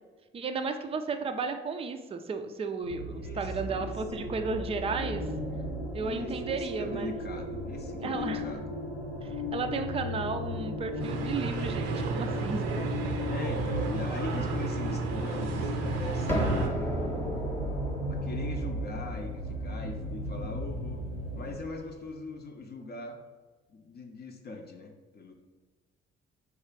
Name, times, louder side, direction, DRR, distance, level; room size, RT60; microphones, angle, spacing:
voice 1, 0.3-5.2 5.9-7.1 8.0-8.4 9.2-12.6, right 4 dB, 20° right, 7 dB, 0.4 m, -33 dB
sound 1, 2.8-21.6, equal, 90° left, 0.6 m, -36 dB
voice 2, 3.2-4.0 6.0-8.7 13.3-17.2 18.1-21.0 21.4-23.2 23.7-25.3, left 2 dB, 35° left, 3 dB, 0.6 m, -41 dB
sound 2, 11.0-16.7, right 4 dB, 60° right, 0.6 m, -33 dB
sound 3, 16.3-21.9, equal, 5° left, 1.0 m, -35 dB
4.7 x 2.4 x 4.5 m, 1.3 s
figure-of-eight pair, 45°, 29 cm